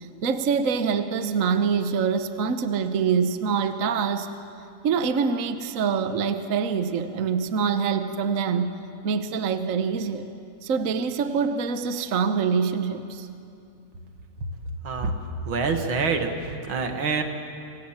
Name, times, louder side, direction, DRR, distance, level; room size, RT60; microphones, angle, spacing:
voice 1, 0.2-4.3 4.8-8.8 9.0-10.3 10.6-13.3, right 6 dB, 50° right, 9 dB, 1.2 m, -25 dB
voice 2, 15.4-17.2, right 4 dB, 75° right, 5 dB, 2.6 m, -26 dB
27.0 x 25.5 x 7.4 m, 2.6 s
omnidirectional pair, 2.2 m